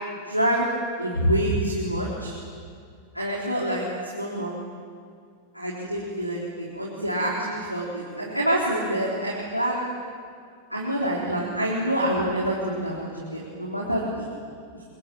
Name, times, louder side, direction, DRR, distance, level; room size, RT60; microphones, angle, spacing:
voice 1, 0.3-0.7 1.0-2.3 3.1-3.8 4.1-4.5 5.5-9.9 10.7-14.3, right 1 dB, 90° right, -4 dB, 4.0 m, -26 dB
29.0 x 22.5 x 9.0 m, 2.2 s
figure-of-eight pair, 90°, 0 cm